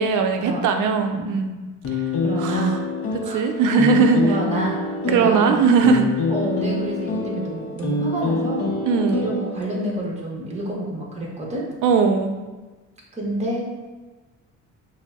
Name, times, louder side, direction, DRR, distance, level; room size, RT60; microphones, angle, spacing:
voice 1, 0.0-1.5 1.9-2.1 2.4-2.8 3.1-4.3 5.1-6.1 8.9-9.3 11.8-12.3, right 5 dB, 70° right, 5 dB, 0.5 m, -19 dB
voice 2, 1.1-1.4 2.2-2.8 3.2-3.4 4.2-4.8 5.1-5.6 6.3-8.8 9.1-11.6 13.1-13.6, right 1 dB, 20° right, -3 dB, 0.8 m, -28 dB
sound 1, 1.8-9.9, left 2 dB, 45° left, 0.6 m, -26 dB
5.8 x 2.0 x 2.3 m, 1.3 s
cardioid pair, 130°, 32 cm